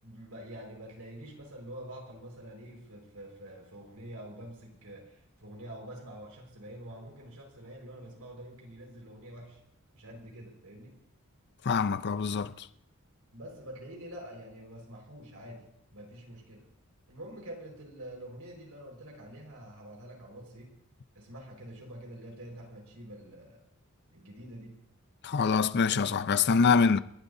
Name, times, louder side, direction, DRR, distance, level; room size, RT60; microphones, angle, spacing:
voice 1, 0.0-9.6 9.9-11.0 13.3-16.7 17.1-20.8 21.1-23.6 24.1-24.8, right 1 dB, 75° right, 5.0 m, -46 dB
voice 2, 11.7-12.5 25.2-27.0, left 5 dB, 50° left, 0.5 m, -25 dB
30.0 x 12.0 x 2.7 m
head